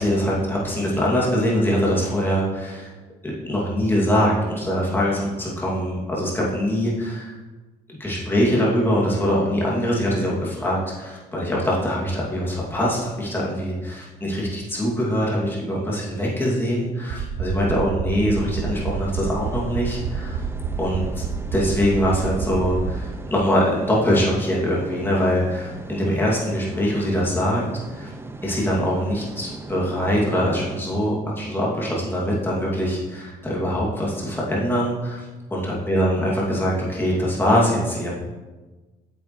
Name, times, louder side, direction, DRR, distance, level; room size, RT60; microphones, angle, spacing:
voice 1, 0.0-2.9 3.4-7.4 7.9-20.4 20.8-21.2 21.5-27.6 27.9-28.1 28.4-35.3 35.5-38.1, equal, 15° left, -5 dB, 2.5 m, -23 dB
sound 1, 17.1-22.9, right 6 dB, 65° right, 0.7 m, -28 dB
sound 2, 18.4-30.8, right 2 dB, 15° right, 0.5 m, -38 dB
8.8 x 7.1 x 3.2 m, 1.2 s
cardioid pair, 110°, 17 cm